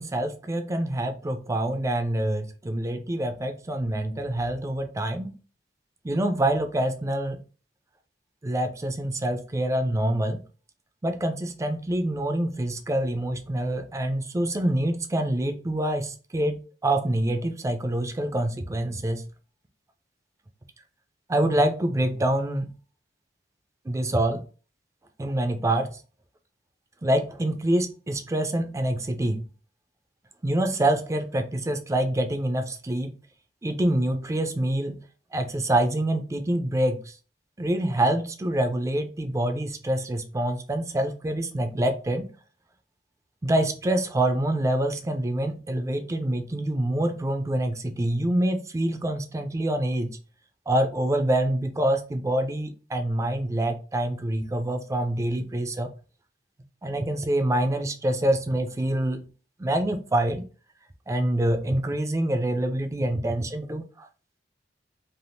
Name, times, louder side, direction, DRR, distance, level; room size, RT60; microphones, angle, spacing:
voice 1, 0.0-5.3 6.0-7.4 8.4-10.4 11.0-19.3 21.3-22.7 23.9-24.4 25.2-26.0 27.0-29.4 30.4-33.1 33.6-35.0 35.3-37.1 37.6-42.3 43.4-50.2 50.7-55.9 56.8-59.3 59.6-60.4 61.1-64.1, right 1 dB, 15° right, 6 dB, 0.4 m, -26 dB
3.4 x 2.4 x 2.5 m, 0.36 s
head